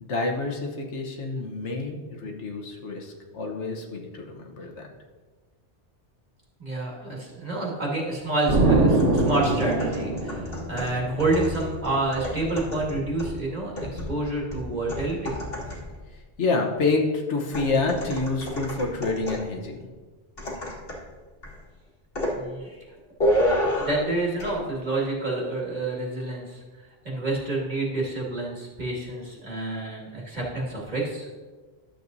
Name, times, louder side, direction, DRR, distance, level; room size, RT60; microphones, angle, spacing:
voice 1, 0.0-4.9 16.1-19.9, left 3 dB, 80° left, 2 dB, 1.4 m, -28 dB
voice 2, 6.6-15.4 22.3-22.8 23.7-26.6 27.0-31.3, right 2 dB, 40° right, -3 dB, 2.0 m, -28 dB
Explosion, 8.5-11.2, right 2 dB, 90° right, 1.5 m, -22 dB
sound 1, 8.9-16.0 17.5-19.6 20.4-21.1 21.4-21.6 22.1-22.4 23.2-24.1 24.4-24.6, equal, 55° left, 1.9 m, -30 dB
12.0 x 7.7 x 2.7 m, 1.3 s
omnidirectional pair, 1.2 m